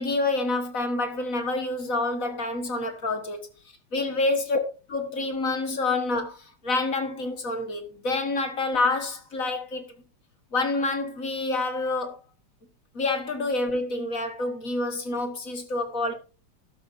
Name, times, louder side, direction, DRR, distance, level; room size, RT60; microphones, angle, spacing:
voice 1, 0.0-3.4 3.9-4.6 4.9-9.9 10.5-12.2 12.9-16.1, left 2 dB, 40° left, 1.9 m, -27 dB
12.5 x 12.0 x 2.7 m
omnidirectional pair, 2.4 m